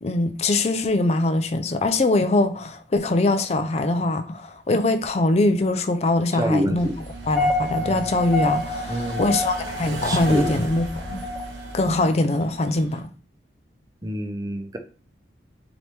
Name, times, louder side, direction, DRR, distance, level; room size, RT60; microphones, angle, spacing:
voice 1, 0.0-6.9 7.2-11.2 11.7-13.0, left 2 dB, 35° left, 0.4 m, -22 dB
voice 2, 6.3-6.9 8.9-9.4 10.0-10.5 14.0-14.8, equal, 20° right, 0.5 m, -27 dB
sound 1, 6.8-13.0, right 2 dB, 85° right, 1.2 m, -37 dB
sound 2, 7.1-12.0, left 2 dB, 5° left, 0.7 m, -28 dB
4.2 x 3.0 x 3.3 m
head